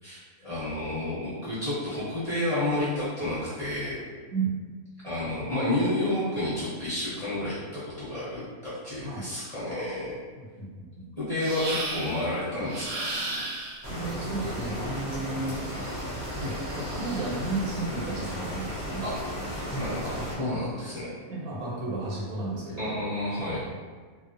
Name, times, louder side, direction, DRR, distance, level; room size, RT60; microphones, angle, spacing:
voice 1, 0.0-4.0 5.0-10.2 11.2-13.0 19.0-19.1 19.7-21.1 22.8-23.7, left 1 dB, 30° left, -13 dB, 0.9 m, -30 dB
voice 2, 10.4-11.1 13.8-15.6 16.4-19.0 21.3-23.0, right 3 dB, 85° right, -5 dB, 1.3 m, -33 dB
sound 1, 11.4-12.3 12.7-13.9 15.6-17.5, right 2 dB, 65° right, 0.9 m, -36 dB
sound 2, 13.8-20.4, equal, 20° right, 0.4 m, -35 dB
2.7 x 2.1 x 2.5 m, 1.5 s
omnidirectional pair, 1.5 m